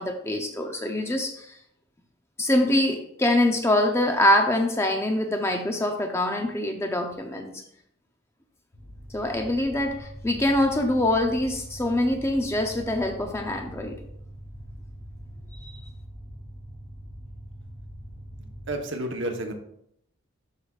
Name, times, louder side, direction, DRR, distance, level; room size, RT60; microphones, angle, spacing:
voice 1, 0.0-1.5 2.4-7.6 9.1-13.9, left 1 dB, 10° left, 4 dB, 0.5 m, -24 dB
sound 1, 8.7-18.7, equal, 80° left, 2.3 m, -43 dB
voice 2, 18.4-19.5, right 1 dB, 55° right, 4 dB, 1.0 m, -31 dB
12.0 x 5.0 x 2.4 m, 0.73 s
head